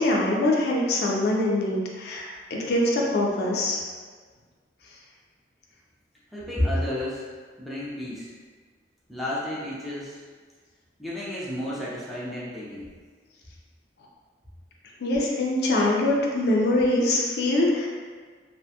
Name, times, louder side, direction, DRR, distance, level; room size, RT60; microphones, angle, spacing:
voice 1, 0.0-3.8 15.0-17.9, left 1 dB, 60° left, -2 dB, 0.4 m, -23 dB
voice 2, 6.3-7.3 7.6-8.3 9.1-10.2 11.0-12.9, left 1 dB, ahead, -8 dB, 0.5 m, -31 dB
2.4 x 2.2 x 2.7 m, 1.5 s
head